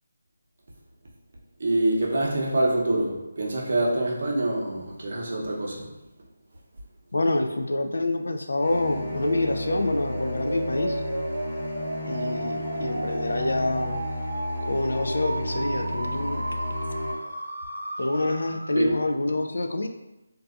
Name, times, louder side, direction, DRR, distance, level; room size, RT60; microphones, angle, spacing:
voice 1, 1.6-5.9 18.8-18.9, right 1 dB, 50° right, -2 dB, 0.6 m, -25 dB
voice 2, 7.1-11.0 12.1-14.0 14.6-16.4 18.0-19.9, left 2 dB, 75° left, 6 dB, 0.3 m, -27 dB
sound 1, 8.6-17.1, left 1 dB, 15° left, 1.0 m, -33 dB
sound 2, 9.1-19.0, right 1 dB, 90° right, 0.5 m, -34 dB
2.5 x 2.3 x 2.3 m, 0.97 s
figure-of-eight pair, 170°, 0 cm